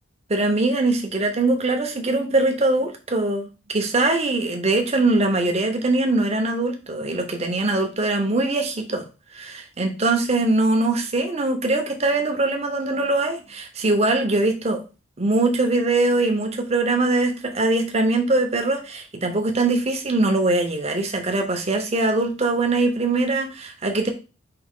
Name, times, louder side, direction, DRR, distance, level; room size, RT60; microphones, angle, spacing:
voice 1, 0.3-9.0 9.3-14.8 15.2-24.1, right 2 dB, 30° right, 5 dB, 0.7 m, -22 dB
4.8 x 3.0 x 3.6 m, 0.31 s
head